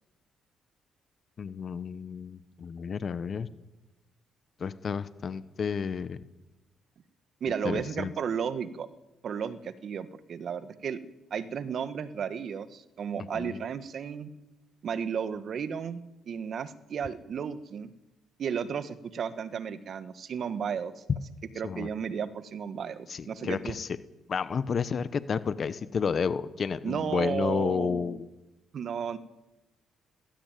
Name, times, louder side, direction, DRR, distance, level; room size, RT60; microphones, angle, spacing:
voice 1, 1.4-3.5 4.6-6.2 7.6-8.1 13.3-13.6 21.6-21.9 23.1-23.9 24.3-28.2, left 6 dB, 50° left, 15 dB, 1.0 m, -31 dB
voice 2, 7.4-8.9 9.2-11.0 11.3-14.3 14.8-17.9 18.4-21.0 21.5-23.8 26.8-28.2 28.7-29.2, right 7 dB, 60° right, 13 dB, 1.5 m, -33 dB
19.0 x 16.0 x 9.2 m, 1.0 s
supercardioid pair, 70°, 0 cm